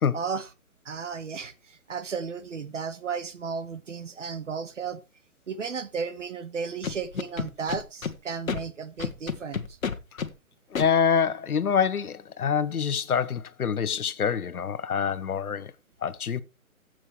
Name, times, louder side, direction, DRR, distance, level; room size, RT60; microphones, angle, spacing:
voice 1, 0.1-0.5 0.8-5.0 5.5-9.8, right 5 dB, 55° right, 1.4 m, -34 dB
Scratching (performance technique), 6.8-8.1 8.5-8.6 9.0-10.3 10.8-10.9, left 6 dB, 65° left, 1.4 m, -30 dB
voice 2, 10.7-15.7 16.0-16.4, left 7 dB, 85° left, 1.1 m, -26 dB
14.5 x 7.7 x 3.1 m
hypercardioid pair, 175°, 43 cm